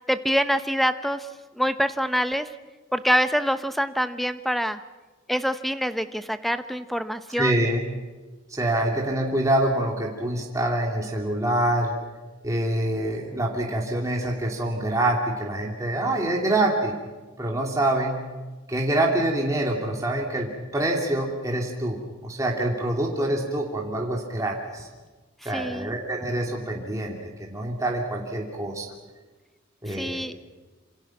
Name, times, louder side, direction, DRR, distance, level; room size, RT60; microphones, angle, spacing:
voice 1, 0.1-1.3 1.5-2.5 2.9-4.8 5.3-7.5 25.5-25.9 29.9-30.4, equal, ahead, 11 dB, 0.8 m, -25 dB
voice 2, 7.4-7.8 8.5-11.9 12.4-16.9 17.4-18.2 18.7-24.9 25.4-28.9 29.8-30.2, right 1 dB, 15° right, -1 dB, 2.7 m, -26 dB
27.0 x 26.5 x 6.0 m, 1.2 s
head